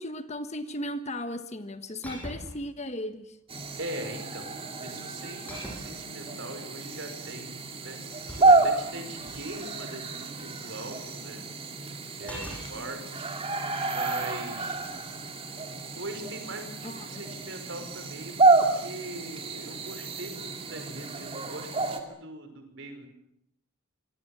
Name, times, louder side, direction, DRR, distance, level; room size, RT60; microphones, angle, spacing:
voice 1, 0.0-3.4 16.8-17.2, left 1 dB, 30° left, 10 dB, 1.4 m, -36 dB
sound 1, 2.0-2.7 3.6-4.0 5.5-6.0 7.7-9.5 12.3-12.7 14.7-15.0, equal, 5° left, 7.5 m, -42 dB
sound 2, 3.5-22.0, right 3 dB, 25° right, 2.7 m, -29 dB
voice 2, 3.8-7.6 7.8-8.0 8.4-11.5 12.1-13.3 13.8-14.8 16.0-23.1, right 1 dB, 60° right, 6 dB, 5.6 m, -41 dB
27.0 x 23.0 x 7.5 m, 0.76 s
head